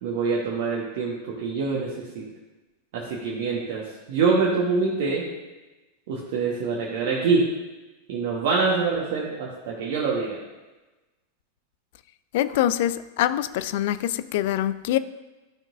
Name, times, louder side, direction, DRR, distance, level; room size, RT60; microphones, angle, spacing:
voice 1, 0.0-2.2 2.9-3.8 4.1-5.2 6.1-7.4 8.1-10.4, right 4 dB, 50° right, 1.2 m, -25 dB
voice 2, 12.3-15.0, left 12 dB, 50° left, 0.3 m, -24 dB
13.0 x 5.9 x 2.6 m
figure-of-eight pair, 90°, 0 cm